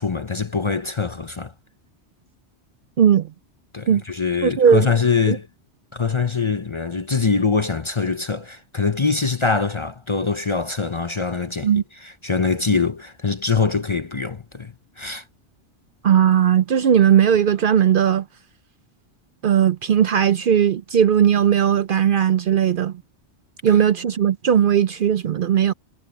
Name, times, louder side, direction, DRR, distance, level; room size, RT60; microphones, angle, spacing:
voice 1, 0.0-1.5 3.7-5.5 5.9-15.2, left 4 dB, 30° left, 0.7 m, -23 dB
voice 2, 3.0-3.3 3.9-4.0 4.4-4.9 5.3-5.4 11.6-11.8 16.0-18.2 19.4-22.9 23.6-25.7, right 9 dB, 60° right, 0.6 m, -17 dB
omnidirectional pair, 1.2 m